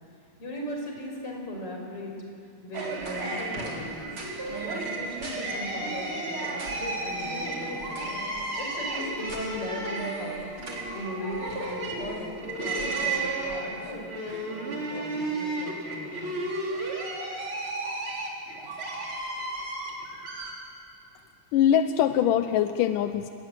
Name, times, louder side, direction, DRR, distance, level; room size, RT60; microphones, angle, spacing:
voice 1, 0.4-2.1 2.6-4.1 4.7-8.1 8.5-10.4 10.9-16.4, left 1 dB, 45° left, 0 dB, 6.5 m, -38 dB
sound 1, 2.7-20.5, right 2 dB, 40° right, 4.4 m, -33 dB
voice 2, 21.5-23.3, left 10 dB, 85° left, 9 dB, 2.4 m, -23 dB
29.5 x 21.0 x 9.0 m, 2.4 s
omnidirectional pair, 3.6 m